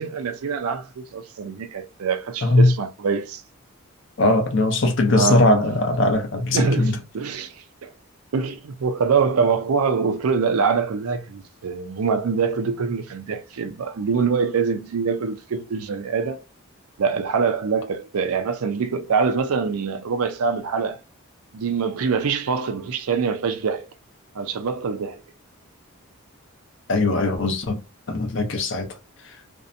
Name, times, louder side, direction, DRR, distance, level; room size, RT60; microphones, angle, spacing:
voice 1, 0.0-3.4 5.1-5.5 6.5-7.9 8.3-16.4 17.0-21.0 21.5-23.9 24.3-25.2, right 5 dB, 80° right, 0.4 m, -24 dB
voice 2, 2.4-2.7 4.2-7.0 26.9-27.8 28.1-28.9 29.2-29.4, left 2 dB, 55° left, 0.6 m, -20 dB
2.6 x 2.1 x 2.5 m
head